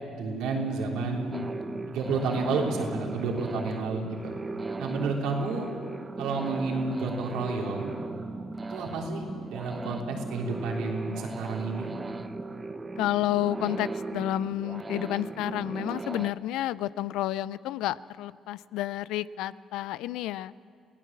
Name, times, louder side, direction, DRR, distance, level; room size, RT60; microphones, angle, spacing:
voice 1, 0.1-1.3 1.9-4.3 4.8-5.7 6.2-8.0 8.7-11.9, right 3 dB, 80° right, 0 dB, 3.4 m, -30 dB
sound 1, 1.3-16.3, right 3 dB, 25° right, 1.0 m, -37 dB
voice 2, 13.0-20.5, left 14 dB, 80° left, 19 dB, 0.4 m, -30 dB
22.5 x 16.0 x 7.5 m, 2.3 s
supercardioid pair, 65°, 0 cm